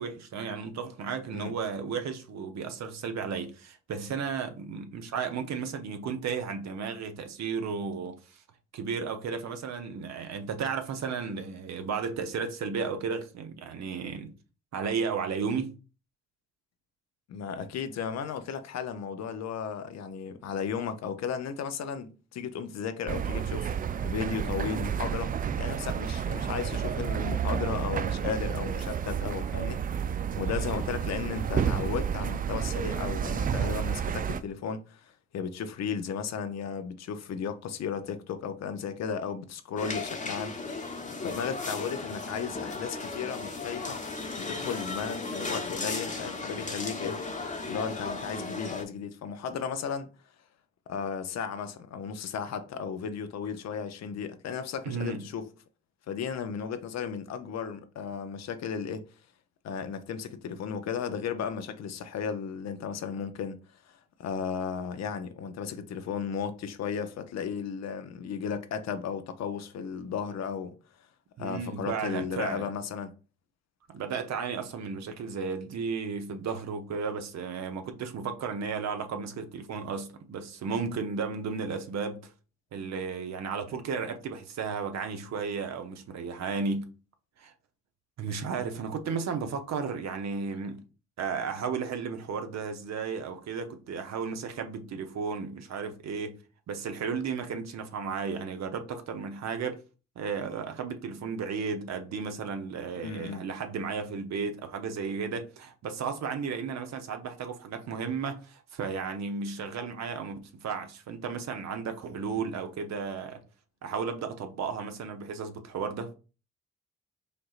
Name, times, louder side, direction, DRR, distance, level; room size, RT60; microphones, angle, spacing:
voice 1, 0.0-8.4 8.7-14.3 14.7-15.7 54.8-55.2 71.4-72.7 73.9-82.3 82.7-86.9 87.4-87.5 88.2-90.8 91.2-96.4 96.7-99.8 100.2-113.4 113.8-116.1, right 5 dB, 55° right, 0.8 m, -34 dB
voice 2, 17.3-25.3 25.6-40.6 41.2-44.0 44.4-47.2 47.7-50.1 50.9-55.4 56.1-59.0 59.6-63.6 63.8-70.7 71.4-73.1 102.9-103.4, left 6 dB, 55° left, 0.6 m, -35 dB
sound 1, 23.1-34.4, right 8 dB, 25° right, 0.4 m, -30 dB
sound 2, 39.8-48.8, left 3 dB, 25° left, 1.0 m, -36 dB
5.1 x 2.8 x 2.4 m
hypercardioid pair, 45°, 33 cm